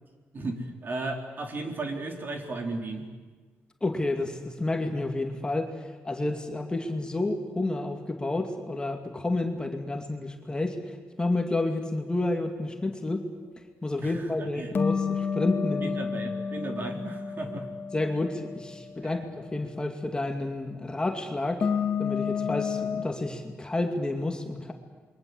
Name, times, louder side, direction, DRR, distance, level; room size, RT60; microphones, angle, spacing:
voice 1, 0.3-3.1 14.0-14.7 15.8-17.7 19.0-19.2, right 2 dB, 45° right, 3 dB, 3.8 m, -35 dB
voice 2, 3.8-5.7 6.0-13.3 13.8-16.0 17.9-21.7 22.0-24.7, left 2 dB, 20° left, 4 dB, 2.4 m, -30 dB
sound 1, 14.7-18.9 21.6-23.0, left 6 dB, 50° left, 2.2 m, -30 dB
28.0 x 23.0 x 8.1 m, 1.4 s
cardioid pair, 105°, 5 cm